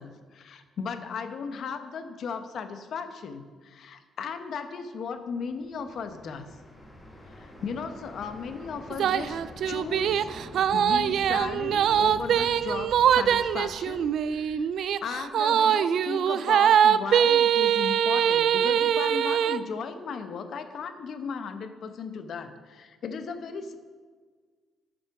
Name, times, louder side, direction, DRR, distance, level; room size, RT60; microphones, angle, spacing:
voice 1, 0.0-6.5 7.2-10.3 10.7-14.7 15.0-23.7, left 5 dB, 65° left, 8 dB, 0.9 m, -36 dB
sound 1, 5.4-15.4, left 1 dB, 15° left, 2.0 m, -46 dB
sound 2, 8.9-19.6, right 9 dB, 70° right, 0.3 m, -23 dB
9.3 x 6.6 x 5.8 m, 1.5 s
cardioid pair, 90°, 0 cm